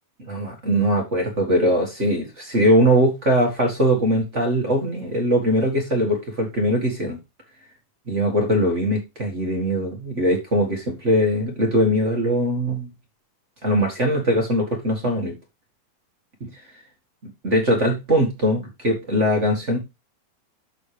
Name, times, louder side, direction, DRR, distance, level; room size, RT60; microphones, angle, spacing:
voice 1, 0.2-7.2 8.1-12.9 13.6-15.3 16.4-16.5 17.4-19.8, equal, 30° right, 1 dB, 1.4 m, -21 dB
12.5 x 4.4 x 3.3 m, 0.23 s
omnidirectional pair, 4.1 m